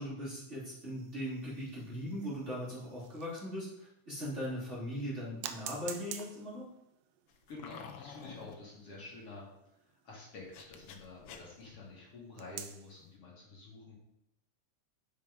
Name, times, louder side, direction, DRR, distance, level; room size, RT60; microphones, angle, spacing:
voice 1, 0.0-6.7, equal, 20° right, -8 dB, 3.4 m, -39 dB
sound 1, 0.8-3.7 4.3-4.4 5.4-11.5 12.4-13.0, right 9 dB, 80° right, 1.4 m, -49 dB
sound 2, 7.3-8.5 10.4-11.7, left 7 dB, 65° left, 1.4 m, -50 dB
voice 2, 7.5-9.5 9.8-14.0, left 3 dB, 50° left, -5 dB, 3.0 m, -49 dB
9.6 x 6.3 x 5.2 m, 0.84 s
omnidirectional pair, 3.5 m